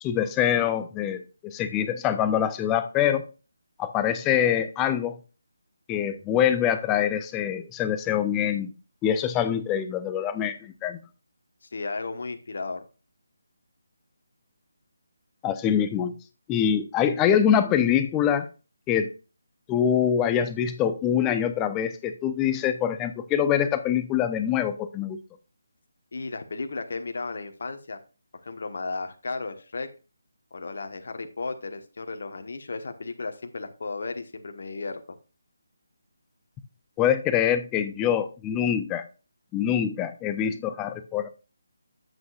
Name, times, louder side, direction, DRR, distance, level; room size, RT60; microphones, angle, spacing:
voice 1, 0.0-3.2 3.8-5.2 5.9-8.7 9.0-11.0 15.4-16.1 16.5-18.5 18.9-19.1 19.7-25.2 37.0-39.1 39.5-41.3, left 9 dB, 15° left, 10 dB, 0.6 m, -24 dB
voice 2, 11.7-12.8 26.1-28.0 28.4-29.9 30.5-35.2, left 3 dB, 60° left, 7 dB, 1.2 m, -34 dB
9.5 x 7.9 x 2.4 m, 0.32 s
figure-of-eight pair, 155°, 0 cm